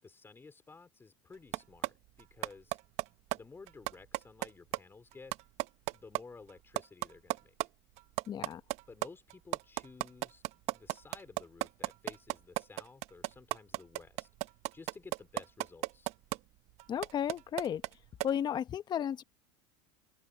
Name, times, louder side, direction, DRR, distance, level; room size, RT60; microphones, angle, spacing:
voice 1, 0.0-2.8 3.3-5.4 5.9-7.5 8.9-14.3 14.7-16.1, left 4 dB, 15° left, 4.9 m, -54 dB
sound 1, 1.5-1.9 2.2-3.0 3.3-3.4 3.7-4.5 4.7-4.8 5.1-6.2 6.5-6.6 6.8-7.7 8.0-16.4 16.8-17.9 18.2-18.3, right 19 dB, 55° right, 1.0 m, -33 dB
voice 2, 8.3-8.6 16.9-17.8 18.2-19.2, left 9 dB, 35° left, 1.3 m, -33 dB
open air
supercardioid pair, 110°, 13 cm